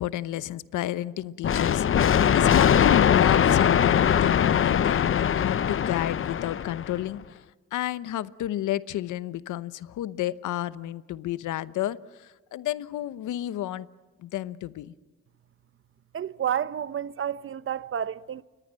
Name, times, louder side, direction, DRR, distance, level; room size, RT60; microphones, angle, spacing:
voice 1, 0.0-7.4 7.7-13.9 14.2-14.9, left 13 dB, 80° left, 0.9 m, -31 dB
sound 1, 1.4-7.0, left 8 dB, 45° left, 0.8 m, -21 dB
voice 2, 16.1-18.4, right 9 dB, 45° right, 0.8 m, -30 dB
29.5 x 23.5 x 7.6 m
cardioid pair, 90°, 30 cm